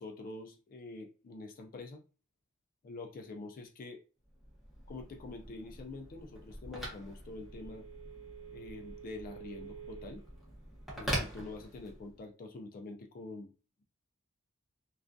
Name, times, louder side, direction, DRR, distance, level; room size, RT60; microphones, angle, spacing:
voice 1, 0.0-2.0 2.8-4.0 4.9-7.9 8.5-10.2 11.0-13.5, left 3 dB, 40° left, 4 dB, 0.3 m, -46 dB
Telephone, 4.3-12.2, right 1 dB, ahead, 0.8 m, -43 dB
2.4 x 2.2 x 2.5 m, 0.34 s
head